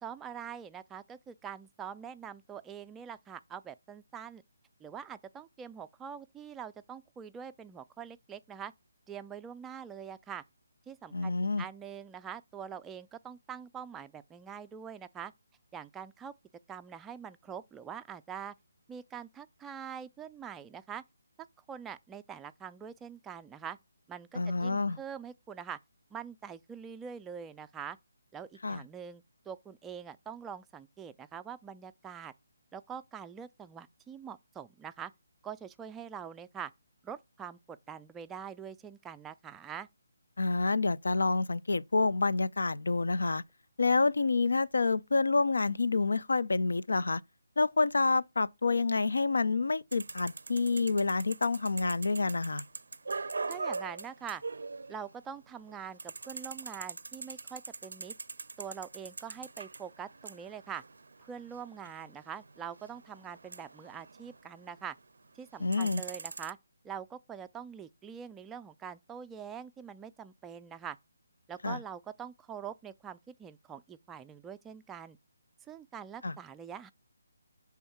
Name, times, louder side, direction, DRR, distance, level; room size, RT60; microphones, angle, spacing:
voice 1, 0.0-4.4 4.8-8.7 9.1-10.4 10.9-15.3 15.7-16.3 16.7-18.5 18.9-21.0 21.7-23.8 24.1-25.8 26.1-28.0 28.3-32.3 32.7-35.1 35.4-36.7 37.0-39.9 53.5-54.4 54.9-58.2 58.6-60.8 61.2-65.0 65.3-66.6 66.8-71.0 71.5-75.2 75.7-76.9, right 7 dB, 10° right, 0.3 m, -44 dB
voice 2, 11.1-11.6 24.3-25.0 28.6-28.8 40.4-43.4 43.8-47.2 47.6-52.6 65.6-66.0 71.6-71.8 76.2-76.3, left 3 dB, 80° left, 0.4 m, -28 dB
sound 1, 49.9-55.4 55.6-65.0 65.4-66.5, right 3 dB, 75° right, 0.4 m, -43 dB
5.4 x 3.5 x 5.8 m
figure-of-eight pair, 155°, 0 cm